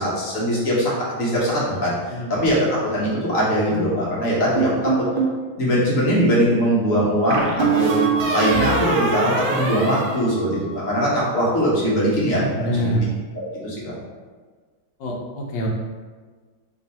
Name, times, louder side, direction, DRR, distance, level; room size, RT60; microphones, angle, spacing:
voice 1, 0.0-5.1 5.6-13.0 13.3-13.9, equal, 50° left, -6 dB, 1.1 m, -21 dB
sound 1, 4.6-5.4 7.3-10.9, right 4 dB, 75° right, 1.4 m, -23 dB
voice 2, 12.5-13.1 15.0-15.7, equal, 70° left, -1 dB, 1.2 m, -25 dB
3.5 x 2.6 x 4.1 m, 1.4 s
omnidirectional pair, 2.3 m